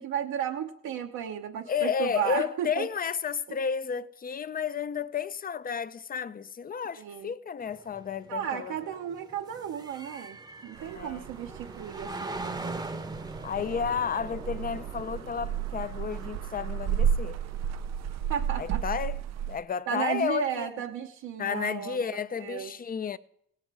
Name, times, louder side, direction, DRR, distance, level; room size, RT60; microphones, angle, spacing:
voice 1, 0.0-2.9 3.5-3.6 6.9-7.3 8.3-12.9 18.3-18.8 19.9-22.0 22.4-22.7, right 9 dB, 80° right, 0.9 m, -34 dB
voice 2, 1.7-8.7 10.9-11.3 13.4-17.4 18.6-19.2 19.5-20.7 21.4-23.2, left 7 dB, 30° left, 0.5 m, -32 dB
sound 1, 7.6-18.3, right 2 dB, 15° right, 0.8 m, -42 dB
sound 2, 10.7-19.6, right 8 dB, 60° right, 0.5 m, -33 dB
17.0 x 8.0 x 4.8 m
cardioid pair, 90°, 30 cm